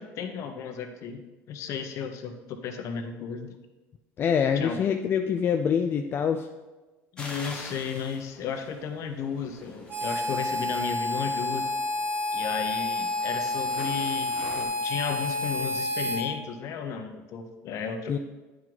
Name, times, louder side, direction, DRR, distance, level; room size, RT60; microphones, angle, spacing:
voice 1, 0.0-3.6 4.5-4.8 7.1-11.7 12.3-18.2, left 6 dB, 55° left, 6 dB, 0.9 m, -34 dB
voice 2, 4.2-6.5 18.1-18.2, left 7 dB, 35° left, 6 dB, 0.4 m, -25 dB
sound 1, 7.2-14.6, left 1 dB, 15° left, 1.4 m, -46 dB
Harmonica, 9.9-16.2, left 2 dB, 35° right, 1.3 m, -29 dB
9.2 x 4.7 x 3.9 m, 1.2 s
supercardioid pair, 110°, 6 cm